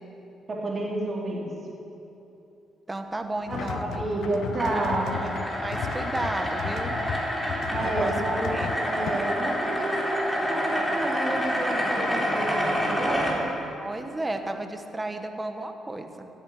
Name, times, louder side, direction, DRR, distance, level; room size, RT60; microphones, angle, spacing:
voice 1, 0.5-1.5 3.5-5.2 7.7-8.5 8.8-13.5, right 2 dB, 35° right, -3 dB, 3.6 m, -30 dB
voice 2, 2.9-4.0 5.0-5.3 5.6-7.0 7.8-8.1 8.5-8.8 13.8-16.3, right 2 dB, 20° right, 6 dB, 1.3 m, -33 dB
sound 1, 3.5-9.1, left 7 dB, 75° left, 0.7 m, -35 dB
sound 2, 3.9-13.3, equal, 5° left, 3.2 m, -28 dB
15.0 x 8.8 x 8.9 m, 3.0 s
cardioid pair, 90°, 0 cm